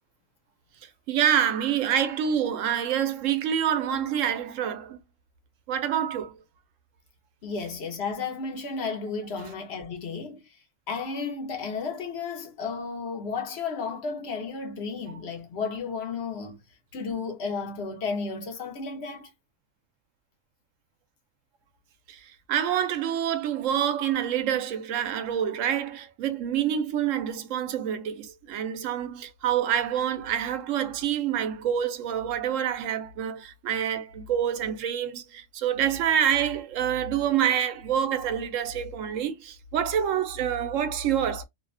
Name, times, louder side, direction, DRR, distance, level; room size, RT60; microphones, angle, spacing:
voice 1, 1.1-5.0 5.7-6.3 22.1-41.4, right 9 dB, 85° right, 0.9 m, -27 dB
voice 2, 7.4-10.6 10.9-16.6 16.9-19.3, left 4 dB, 60° left, 0.9 m, -33 dB
2.7 x 2.1 x 2.3 m
omnidirectional pair, 1.3 m